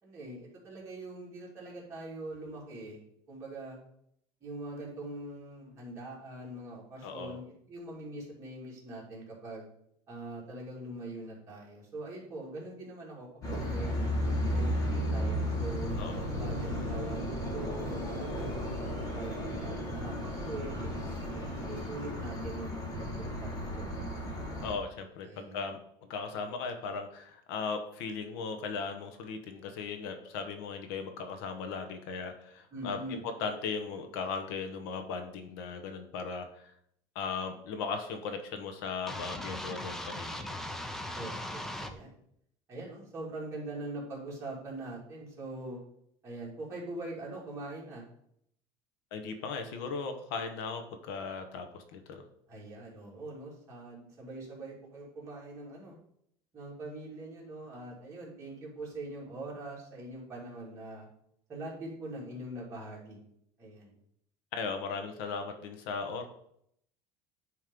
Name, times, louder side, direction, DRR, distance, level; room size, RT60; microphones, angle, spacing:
voice 1, 0.0-3.0 3.3-3.8 4.4-9.7 10.1-14.0 14.5-16.0 16.4-18.6 19.1-23.9 25.2-25.7 32.7-33.2 41.1-42.1 42.7-45.8 46.2-48.0 52.5-56.0 56.5-61.1 61.5-63.2 63.6-63.9, right 2 dB, 25° right, -4 dB, 2.6 m, -43 dB
voice 2, 7.0-7.4 16.0-16.3 24.6-25.8 26.1-36.7 37.1-40.6 49.1-52.2 64.5-66.3, left 5 dB, 75° left, 6 dB, 1.1 m, -37 dB
sound 1, 13.4-24.7, equal, 30° left, 1.8 m, -34 dB
sound 2, 39.1-41.9, left 1 dB, 5° left, 0.5 m, -39 dB
9.4 x 3.2 x 5.2 m, 0.71 s
cardioid pair, 160°, 12 cm